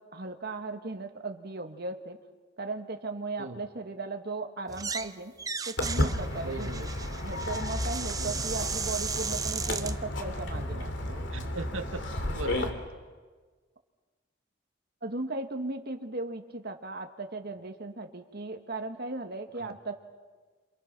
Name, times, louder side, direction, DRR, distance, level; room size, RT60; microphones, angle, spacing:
voice 1, 0.0-2.2 2.6-5.3 5.7-6.9 7.2-11.2 15.0-20.0, right 2 dB, 55° right, 5 dB, 1.9 m, -37 dB
sound 1, 4.7-5.1 5.4-10.0, right 6 dB, 20° right, 0.7 m, -35 dB
Walk footsteps, 5.8-12.7, left 1 dB, 65° left, 2.6 m, -32 dB
voice 2, 6.4-6.8 8.2-8.3 11.3-12.1 12.3-12.8 19.6-19.8, right 3 dB, 90° right, 5 dB, 1.5 m, -38 dB
28.5 x 28.0 x 6.2 m, 1.4 s
head